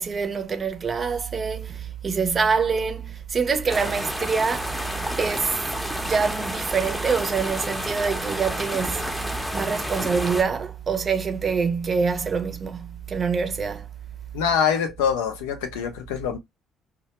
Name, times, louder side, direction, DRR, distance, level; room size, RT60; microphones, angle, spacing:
voice 1, 0.0-4.7 5.2-5.6 6.0-13.9, right 5 dB, 40° right, 0.6 m, -25 dB
sound 1, 3.7-10.4, equal, ahead, 0.6 m, -30 dB
voice 2, 14.3-16.4, left 7 dB, 90° left, 0.5 m, -24 dB
2.2 x 2.1 x 2.8 m
hypercardioid pair, 60°, 0 cm